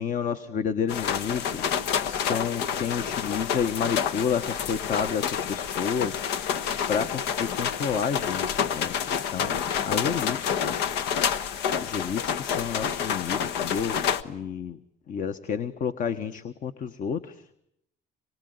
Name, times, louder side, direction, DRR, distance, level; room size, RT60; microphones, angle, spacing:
voice 1, 0.0-1.7 2.0-6.3 6.9-9.6 9.9-10.8 11.8-14.0 14.2-14.8 15.1-17.4, left 7 dB, 50° left, 10 dB, 1.3 m, -30 dB
sound 1, 0.9-14.2, left 8 dB, 90° left, 1.2 m, -28 dB
26.0 x 22.5 x 9.5 m, 0.78 s
cardioid pair, 110°, 17 cm